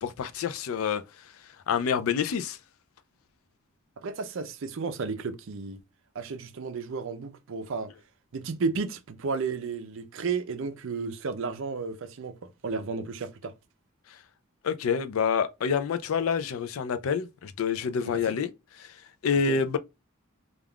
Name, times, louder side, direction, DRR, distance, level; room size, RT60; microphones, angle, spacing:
voice 1, 0.0-1.3 1.7-2.6 14.1-14.2 14.6-19.8, left 6 dB, 70° left, 0.4 m, -28 dB
voice 2, 4.0-5.8 6.1-7.9 8.3-13.5 18.3-18.4 19.5-19.6, right 4 dB, 60° right, 0.5 m, -33 dB
3.4 x 2.4 x 2.2 m
head